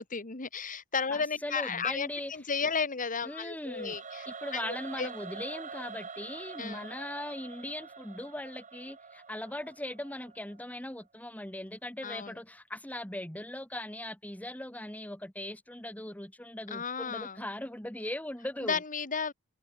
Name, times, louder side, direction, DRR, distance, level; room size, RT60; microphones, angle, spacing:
voice 1, 0.0-4.3 4.6-5.1 6.6-6.9 12.0-12.3 16.7-17.4 18.6-19.3, left 5 dB, 35° left, 2.1 m, -33 dB
voice 2, 1.1-2.3 3.3-4.0 4.3-18.8, left 1 dB, 5° left, 2.0 m, -39 dB
Singing / Musical instrument, 3.6-10.7, right 5 dB, 35° right, 2.6 m, -45 dB
head